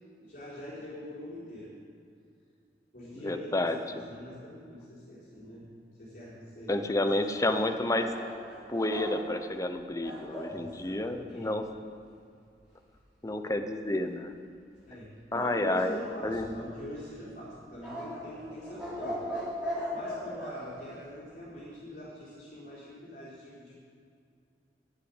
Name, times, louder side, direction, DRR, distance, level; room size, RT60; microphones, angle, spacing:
voice 1, 0.2-1.8 2.9-5.7 6.0-7.1 7.4-7.5 10.5-11.6 14.9-23.7, equal, 50° left, -9 dB, 4.0 m, -44 dB
voice 2, 3.2-3.8 6.7-8.1 8.7-11.9 13.2-14.3 15.3-16.0 16.2-16.5, left 1 dB, 20° left, 7 dB, 0.8 m, -30 dB
sound 1, 7.9-10.6 15.9-16.8 17.8-20.6, equal, 5° right, 4.1 m, -38 dB
10.5 x 8.3 x 9.8 m, 2.4 s
head